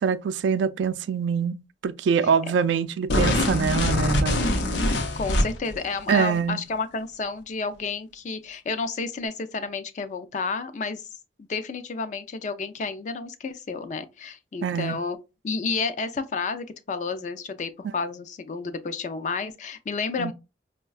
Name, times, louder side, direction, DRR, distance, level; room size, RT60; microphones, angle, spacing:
voice 1, 0.0-4.4 6.1-6.6 14.6-15.0 20.2-20.3, right 6 dB, 90° right, 0.3 m, -24 dB
sound 1, 3.1-5.8, left 1 dB, 90° left, 0.6 m, -23 dB
voice 2, 5.2-11.1 11.4-15.2 15.4-20.3, left 4 dB, 45° left, 0.4 m, -31 dB
5.3 x 2.2 x 2.3 m
head